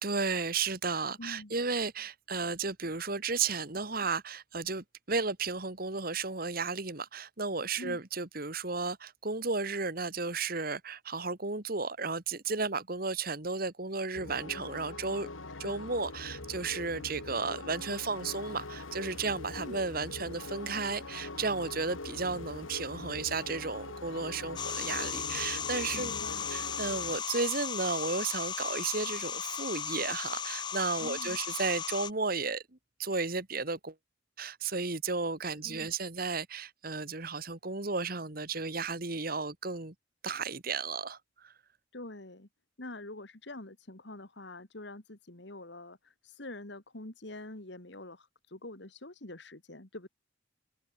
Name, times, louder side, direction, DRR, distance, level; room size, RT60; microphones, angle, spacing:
voice 1, 0.0-15.3 15.6-26.1 26.5-32.6 33.0-33.9 34.4-39.9 40.2-41.2 41.4-41.5, right 4 dB, 45° right, 1.9 m, -33 dB
voice 2, 1.2-1.5 7.8-8.0 15.5-15.8 19.6-19.8 25.9-26.4 31.0-31.4 35.4-35.9 41.9-42.5 42.8-50.1, left 2 dB, 60° left, 2.2 m, -45 dB
sound 1, 14.1-27.2, left 2 dB, 90° left, 2.7 m, -43 dB
sound 2, 24.6-32.1, left 7 dB, 20° left, 0.4 m, -36 dB
head